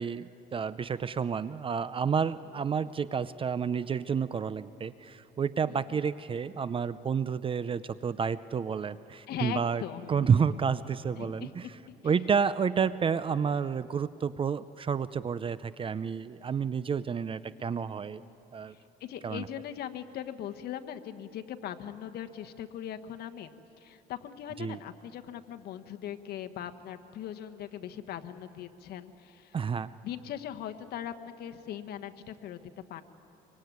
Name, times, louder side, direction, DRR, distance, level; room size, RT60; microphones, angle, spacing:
voice 1, 0.0-9.8 10.1-11.7 12.0-18.2 18.5-18.7 19.2-19.5 24.6-24.8 29.5-29.9, right 6 dB, 30° right, 15 dB, 0.6 m, -30 dB
voice 2, 5.6-6.0 9.3-10.6 11.2-11.7 18.7-23.5 23.8-29.6 30.0-32.6 32.9-33.0, left 10 dB, 70° left, 7 dB, 1.3 m, -40 dB
24.5 x 24.0 x 9.5 m, 2.9 s
cardioid pair, 110°, 17 cm